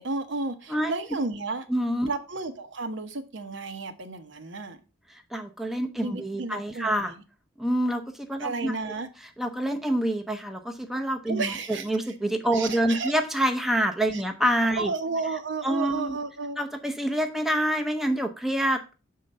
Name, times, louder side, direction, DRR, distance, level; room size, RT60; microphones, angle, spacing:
voice 1, 0.0-1.7 2.0-4.8 6.0-7.2 8.4-9.1 11.3-12.1 12.5-13.1 14.1-14.2 14.7-16.6, right 3 dB, 65° right, 7 dB, 0.9 m, -32 dB
voice 2, 1.7-2.1 5.1-7.1 7.6-8.7 9.4-14.9 15.6-16.2 16.6-19.0, right 1 dB, ahead, 4 dB, 0.7 m, -27 dB
6.5 x 3.8 x 5.4 m, 0.31 s
head